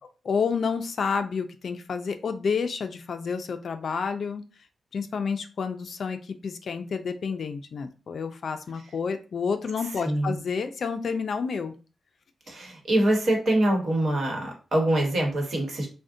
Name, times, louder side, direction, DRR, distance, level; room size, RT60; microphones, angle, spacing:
voice 1, 0.0-4.4 4.9-11.7, left 5 dB, 60° left, 8 dB, 0.3 m, -30 dB
voice 2, 10.0-10.3 12.5-15.9, right 1 dB, 55° right, 1 dB, 1.0 m, -24 dB
2.5 x 2.1 x 3.6 m, 0.35 s
wide cardioid pair, 120°, 0 cm